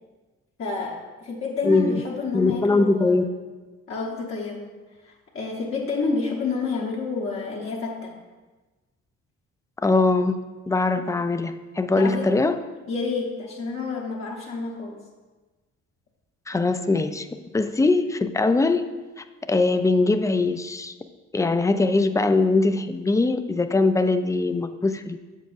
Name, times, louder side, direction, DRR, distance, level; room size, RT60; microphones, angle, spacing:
voice 1, 0.6-3.3 3.9-4.8 5.0-8.2 11.0-11.1 12.0-12.4 12.9-15.0, left 4 dB, 45° left, -3 dB, 0.9 m, -29 dB
voice 2, 1.6-2.0 2.3-3.2 9.8-10.4 10.7-12.6 16.5-17.3 17.5-18.8 19.2-20.9 21.3-25.2, left 3 dB, 10° left, 9 dB, 0.3 m, -21 dB
8.1 x 7.3 x 2.5 m, 1.2 s
cardioid pair, 90°, 30 cm